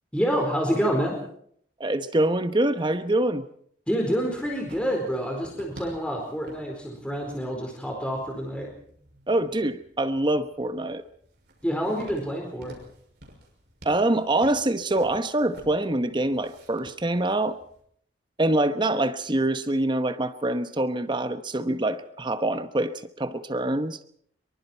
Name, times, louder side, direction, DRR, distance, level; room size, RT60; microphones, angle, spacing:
voice 1, 0.1-1.1 3.9-8.7 11.6-12.7, equal, 5° left, 0 dB, 4.4 m, -27 dB
voice 2, 1.8-3.5 9.3-11.0 13.8-17.6 18.4-24.0, right 1 dB, 25° right, 10 dB, 1.0 m, -25 dB
sound 1, 4.1-17.8, right 1 dB, 65° right, 6.3 m, -50 dB
24.5 x 23.5 x 4.5 m, 0.62 s
head